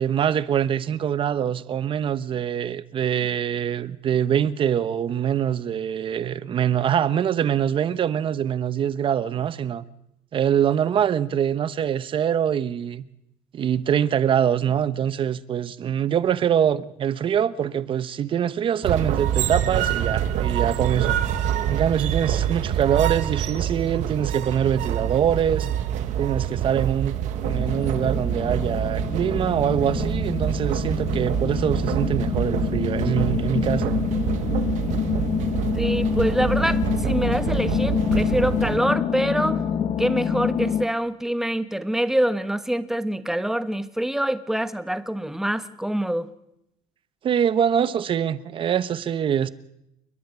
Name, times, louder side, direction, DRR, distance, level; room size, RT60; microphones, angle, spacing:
voice 1, 0.0-9.8 10.3-13.0 13.5-25.7 26.2-34.0 47.2-49.5, right 9 dB, 40° right, 1.0 m, -24 dB
sound 1, 18.8-38.8, right 10 dB, 65° right, 1.8 m, -26 dB
sound 2, 27.4-40.9, left 7 dB, 50° left, 1.4 m, -27 dB
voice 2, 35.7-39.6 40.0-46.3, right 1 dB, 5° right, 1.3 m, -25 dB
30.0 x 10.5 x 9.7 m
cardioid pair, 130°, 13 cm